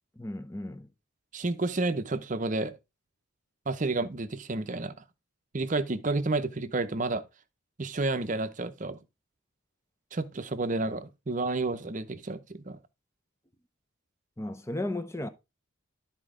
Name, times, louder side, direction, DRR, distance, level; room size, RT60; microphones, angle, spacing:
voice 1, 0.2-0.9 14.4-15.3, left 1 dB, 15° left, 0.6 m, -35 dB
voice 2, 1.3-2.7 3.7-4.9 5.5-7.2 7.8-9.0 10.1-12.8, right 2 dB, 35° right, 0.7 m, -30 dB
12.5 x 4.4 x 3.7 m
head